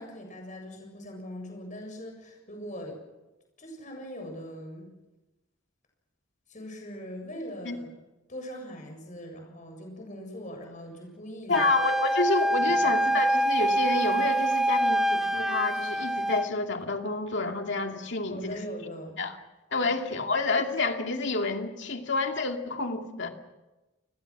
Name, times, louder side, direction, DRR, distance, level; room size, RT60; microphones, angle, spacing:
voice 1, 0.0-3.0 3.6-4.9 6.5-7.9 8.3-11.7 12.8-12.9 18.3-19.2, equal, 40° left, 3 dB, 7.4 m, -41 dB
voice 2, 11.5-18.6 19.2-19.4 19.7-23.3, left 3 dB, 60° left, 4 dB, 2.5 m, -29 dB
Wind instrument woodwind instrument, 11.5-16.5, right 1 dB, ahead, 1.0 m, -25 dB
29.5 x 21.5 x 6.2 m, 1.1 s
head